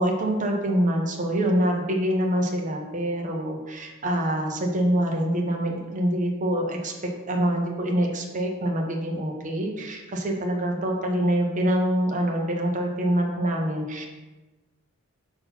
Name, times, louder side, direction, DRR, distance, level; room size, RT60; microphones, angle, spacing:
voice 1, 0.0-14.1, right 1 dB, 35° right, 1 dB, 1.0 m, -25 dB
5.9 x 3.9 x 5.5 m, 1.2 s
head